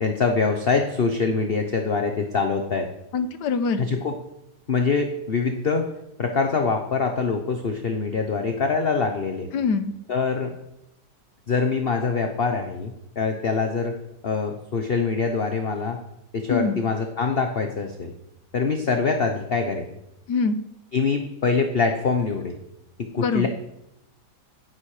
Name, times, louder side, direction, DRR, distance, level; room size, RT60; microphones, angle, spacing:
voice 1, 0.0-2.9 3.8-4.1 4.7-5.9 6.2-9.5 10.1-10.6 11.5-13.9 14.2-16.0 16.3-18.1 18.5-19.9 20.9-22.6 23.0-23.5, left 4 dB, 40° left, 4 dB, 1.2 m, -24 dB
voice 2, 3.1-3.9 9.5-9.9 16.5-16.8 20.3-20.6 23.2-23.4, left 4 dB, 75° left, 10 dB, 1.6 m, -24 dB
16.5 x 10.5 x 5.0 m, 0.85 s
omnidirectional pair, 1.8 m